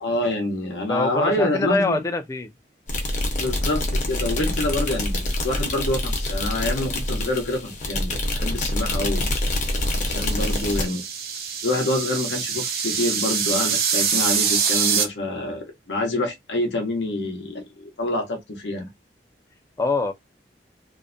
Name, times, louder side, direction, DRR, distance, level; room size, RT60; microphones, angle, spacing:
voice 1, 0.0-2.0 3.3-9.2 10.1-11.0 11.6-18.9, left 1 dB, 85° left, 0.7 m, -26 dB
voice 2, 0.9-2.5 19.8-20.1, left 2 dB, 15° left, 0.3 m, -24 dB
sound 1, 2.9-10.9, left 1 dB, 45° left, 0.7 m, -26 dB
sound 2, 9.9-15.0, right 6 dB, 60° right, 0.5 m, -25 dB
2.5 x 2.1 x 2.4 m
head